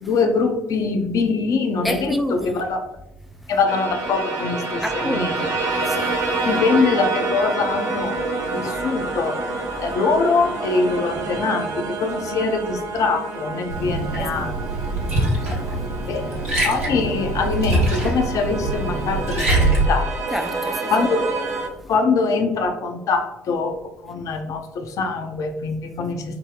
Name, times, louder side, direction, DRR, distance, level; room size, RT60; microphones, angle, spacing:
voice 1, 0.0-2.9 3.5-5.4 6.5-8.2 8.5-9.4 9.8-14.5 16.1-16.3 16.6-20.1 20.9-21.3 21.9-23.8 24.0-26.4, left 4 dB, 50° left, 0.6 m, -23 dB
voice 2, 1.8-2.7 4.8-6.5 8.5-8.6 14.2-14.6 20.3-20.9, equal, ahead, 0.4 m, -29 dB
sound 1, 3.7-21.7, right 3 dB, 50° right, 0.8 m, -28 dB
Liquid, 13.7-19.8, right 2 dB, 85° right, 0.9 m, -23 dB
4.7 x 2.0 x 3.7 m
figure-of-eight pair, 50°, 7 cm